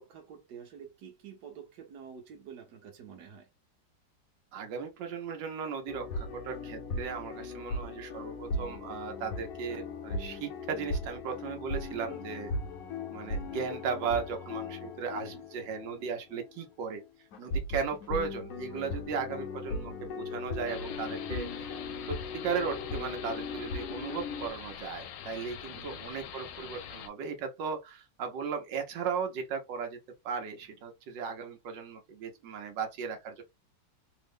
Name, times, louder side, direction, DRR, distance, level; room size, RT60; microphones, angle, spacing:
voice 1, 0.0-3.5 15.1-15.5 25.7-26.1, right 7 dB, 70° right, 1.5 m, -48 dB
voice 2, 4.5-12.5 13.1-17.0 17.4-22.2 22.4-30.0 30.2-33.4, right 6 dB, 90° right, 1.5 m, -36 dB
sound 1, 5.9-16.1 16.3-16.5 17.3-24.5, left 3 dB, 60° left, 1.0 m, -38 dB
sound 2, 20.7-27.1, left 8 dB, 85° left, 1.2 m, -44 dB
3.5 x 2.0 x 3.5 m
omnidirectional pair, 1.9 m